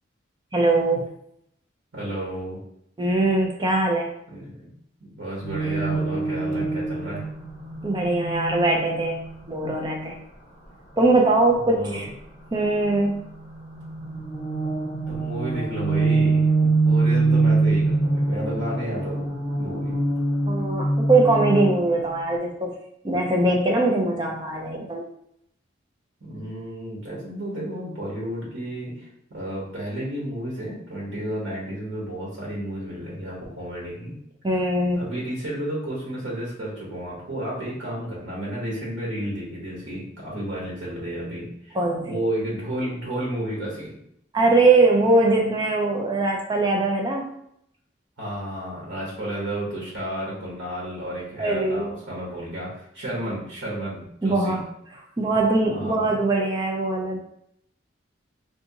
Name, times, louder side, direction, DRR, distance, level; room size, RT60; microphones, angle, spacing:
voice 1, 0.5-1.1 3.0-4.1 7.8-9.2 9.5-10.2 11.0-12.1 12.5-13.2 20.5-22.7 23.0-25.0 34.4-35.1 41.7-42.1 44.3-47.3 51.4-51.9 54.2-54.6 55.2-57.2, right 2 dB, 20° right, 1 dB, 0.4 m, -21 dB
voice 2, 1.9-2.6 4.3-4.7 5.0-7.3 11.7-12.1 15.1-19.2 19.6-20.1 26.2-34.2 34.9-41.8 42.0-43.9 48.2-54.6 55.7-56.0, right 1 dB, 80° right, -5 dB, 1.2 m, -32 dB
sound 1, 5.4-9.6 12.7-21.9, right 3 dB, 85° left, 0.7 m, -24 dB
3.4 x 2.8 x 2.8 m, 0.75 s
head